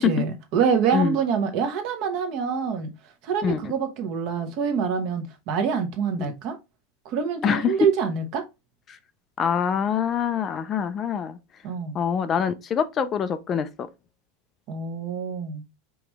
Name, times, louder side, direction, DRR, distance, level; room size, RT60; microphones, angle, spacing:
voice 1, 0.0-2.9 3.2-6.6 7.0-8.4 11.6-12.0 14.7-15.6, right 6 dB, 45° right, 1.0 m, -26 dB
voice 2, 3.4-3.7 7.4-7.7 8.9-9.0 9.4-11.4 11.9-13.9, left 7 dB, 25° left, 0.4 m, -25 dB
4.9 x 3.1 x 3.4 m
supercardioid pair, 160°, 0 cm